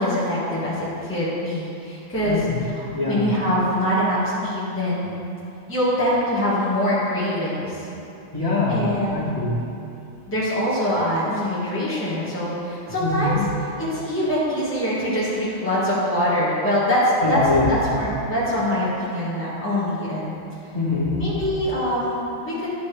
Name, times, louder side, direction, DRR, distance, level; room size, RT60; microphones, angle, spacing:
voice 1, 0.0-5.2 5.7-7.8 8.7-9.2 10.3-17.4 17.7-20.3 21.2-22.7, equal, 10° left, -10 dB, 1.8 m, -24 dB
voice 2, 2.3-2.6 2.9-3.3 8.3-9.5 13.0-13.4 17.2-17.7 20.7-21.2, left 3 dB, 25° left, -10 dB, 2.1 m, -23 dB
10.5 x 6.9 x 3.4 m, 2.7 s
omnidirectional pair, 1.4 m